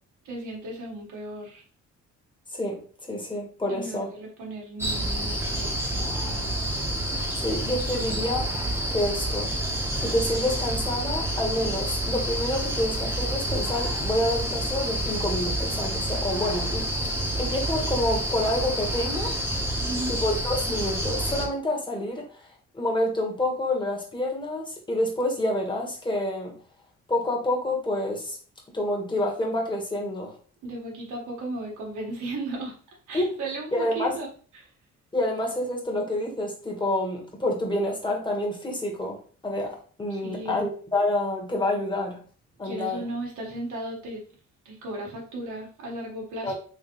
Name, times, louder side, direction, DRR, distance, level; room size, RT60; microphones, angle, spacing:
voice 1, 0.2-1.6 3.7-6.6 7.1-7.4 19.8-20.1 30.6-32.7 33.1-34.7 40.1-40.6 42.6-44.2 44.6-46.5, right 2 dB, 75° right, -2 dB, 1.5 m, -36 dB
voice 2, 3.1-4.1 7.4-8.6 8.9-9.5 10.0-16.9 17.4-19.3 20.1-22.5 22.7-26.5 27.1-28.4 28.7-30.3 33.1-33.3 33.7-34.2 35.1-39.2 39.4-42.2 42.6-43.0 46.4-46.5, left 1 dB, 15° left, -1 dB, 1.4 m, -28 dB
sound 1, 4.8-21.5, right 1 dB, 10° right, 1.1 m, -28 dB
3.7 x 3.2 x 3.0 m, 0.42 s
cardioid pair, 90°, 30 cm